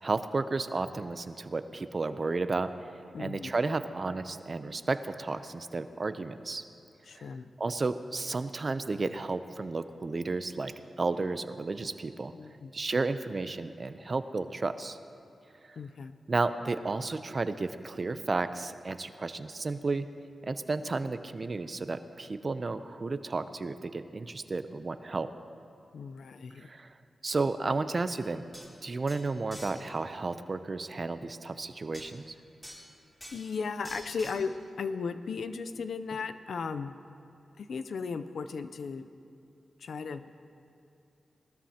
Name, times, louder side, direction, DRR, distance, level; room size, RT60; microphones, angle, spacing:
voice 1, 0.0-2.9 3.2-6.6 7.1-7.3 7.6-12.3 12.7-15.0 16.3-20.1 20.4-25.3 26.6-26.9 27.2-28.4 28.8-32.3, right 3 dB, 45° right, 11 dB, 0.6 m, -32 dB
voice 2, 3.1-3.5 7.1-7.5 12.3-12.8 15.8-16.1 25.9-26.7 33.3-36.9 37.6-39.1 39.8-40.3, left 5 dB, 75° left, 11 dB, 0.5 m, -36 dB
sound 1, 28.2-28.3 28.5-28.7 29.1-29.8 31.9-32.1 32.6-32.9 33.2-33.5 33.8-34.4, equal, 10° left, 2.7 m, -46 dB
19.0 x 13.0 x 2.9 m, 2.6 s
cardioid pair, 60°, 0 cm